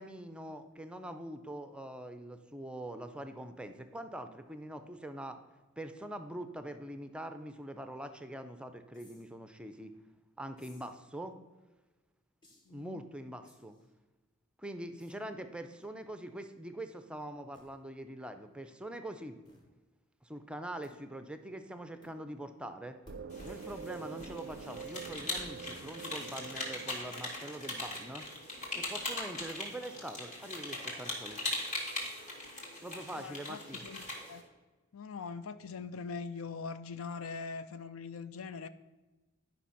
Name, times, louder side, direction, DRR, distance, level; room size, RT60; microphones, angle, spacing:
voice 1, 0.0-5.4 5.8-10.0 10.4-11.4 12.7-13.8 14.6-19.4 20.2-23.0 23.4-28.2 28.8-31.4 32.8-33.9, right 1 dB, 5° right, 9 dB, 0.5 m, -43 dB
sound 1, 8.9-9.3 10.6-11.0 12.4-12.8 13.4-13.9 15.0-15.2 15.8-16.1 16.3-16.4 17.5-17.7 19.4-19.7 20.8-21.0 22.0-22.2 23.0-25.8, equal, 20° left, 1.5 m, -55 dB
voice 2, 12.7-13.0 33.2-34.4 34.9-38.7, left 5 dB, 65° left, 13 dB, 0.5 m, -42 dB
sound 2, 23.1-28.3, right 7 dB, 55° right, 0.3 m, -47 dB
sound 3, 23.3-34.4, left 1 dB, 35° left, 2.3 m, -40 dB
11.0 x 5.4 x 5.7 m, 1.2 s
head